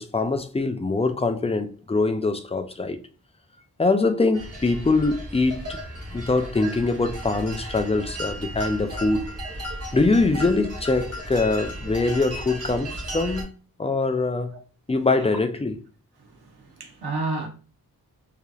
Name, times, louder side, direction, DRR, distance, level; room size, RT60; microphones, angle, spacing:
voice 1, 0.0-3.0 3.8-5.8 6.1-9.4 9.9-13.5 13.8-14.5 14.9-15.7, left 3 dB, 15° left, 0.4 m, -23 dB
sound 1, 4.3-13.4, equal, 40° right, 1.6 m, -35 dB
voice 2, 16.2-17.5, right 3 dB, 85° right, 1.0 m, -31 dB
4.9 x 2.8 x 2.3 m
wide cardioid pair, 120°, 37 cm